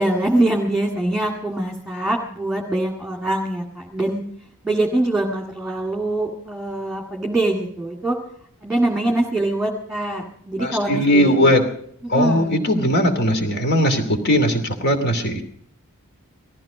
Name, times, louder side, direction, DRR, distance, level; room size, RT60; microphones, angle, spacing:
voice 1, 0.0-4.2 4.6-8.2 8.6-11.5 12.0-12.7, right 1 dB, 5° right, 0 dB, 2.0 m, -23 dB
voice 2, 10.6-11.7 12.1-15.4, equal, 50° left, 6 dB, 2.7 m, -19 dB
18.5 x 15.0 x 5.1 m, 0.65 s
head